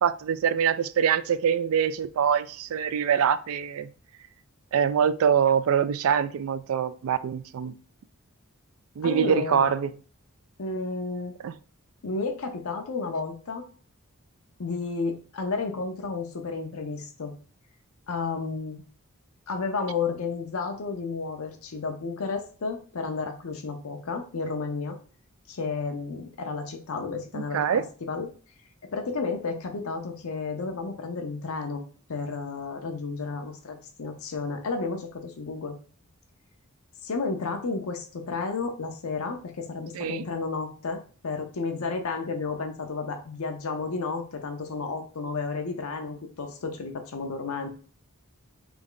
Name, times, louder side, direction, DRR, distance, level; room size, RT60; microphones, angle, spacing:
voice 1, 0.0-3.9 4.7-7.7 9.0-9.9 11.4-11.5 27.3-27.8 39.9-40.2, right 7 dB, 70° right, 0.3 m, -24 dB
voice 2, 9.0-9.7 10.6-11.4 12.0-13.7 14.6-17.3 18.1-18.8 19.5-25.0 25.5-28.3 28.9-31.8 32.1-35.8 37.0-47.7, left 4 dB, 70° left, 0.6 m, -32 dB
3.4 x 3.1 x 3.8 m
head